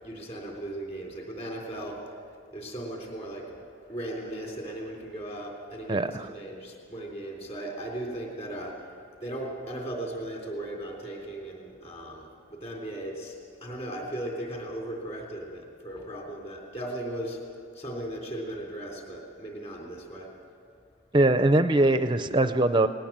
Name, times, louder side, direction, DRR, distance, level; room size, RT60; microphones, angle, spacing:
voice 1, 0.0-2.0 2.5-3.6 3.9-8.7 9.2-13.3 13.6-17.4 17.7-20.3, right 1 dB, 30° left, 0 dB, 3.4 m, -37 dB
voice 2, 5.9-6.3 21.1-22.9, right 2 dB, 25° right, 10 dB, 0.5 m, -22 dB
19.5 x 18.5 x 7.4 m, 2.3 s
head